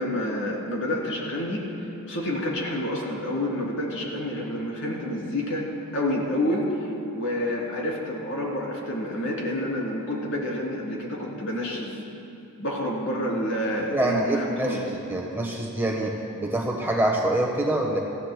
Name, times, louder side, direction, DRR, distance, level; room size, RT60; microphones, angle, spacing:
voice 1, 0.0-1.6 2.1-5.6 5.9-12.0 12.6-14.9, left 1 dB, 60° left, -3 dB, 3.1 m, -28 dB
voice 2, 13.8-14.8 15.1-18.0, right 1 dB, 10° right, -1 dB, 1.2 m, -25 dB
26.5 x 15.0 x 2.2 m, 2.7 s
head